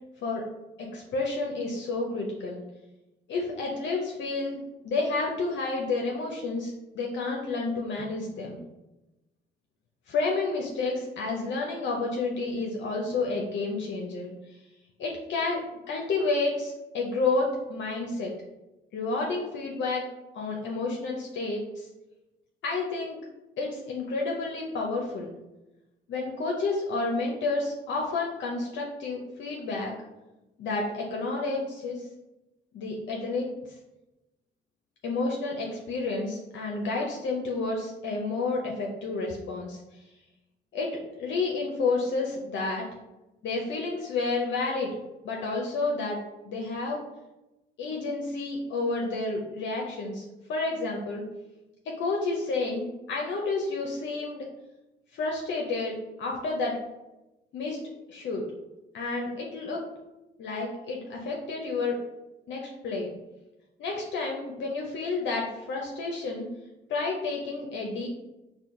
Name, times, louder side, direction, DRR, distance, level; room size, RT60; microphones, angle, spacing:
voice 1, 0.8-2.6 3.3-8.6 10.1-14.3 15.0-18.3 18.9-20.0 20.3-21.9 22.6-23.2 23.6-25.3 26.1-29.9 30.6-32.1 32.7-33.5 35.0-39.8 40.7-42.9 43.4-45.0 45.2-46.2 46.5-47.0 47.8-51.2 51.9-54.4 55.1-56.8 57.5-57.8 58.1-58.5 58.9-59.8 60.4-62.0 62.5-63.1 63.8-66.5 66.9-68.1, left 3 dB, 70° left, -1 dB, 0.6 m, -30 dB
4.3 x 2.2 x 3.7 m, 1.0 s
cardioid pair, 90°, 20 cm